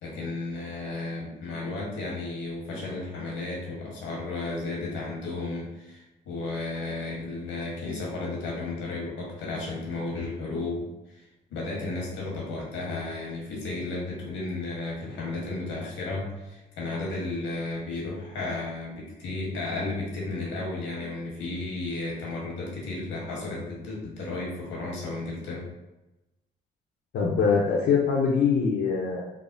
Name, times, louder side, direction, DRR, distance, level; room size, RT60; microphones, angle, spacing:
voice 1, 0.0-25.6, left 2 dB, 85° left, -3 dB, 1.1 m, -33 dB
voice 2, 27.1-29.3, left 5 dB, 60° left, -5 dB, 0.6 m, -23 dB
3.4 x 2.0 x 2.5 m, 1.0 s
cardioid pair, 90°, 20 cm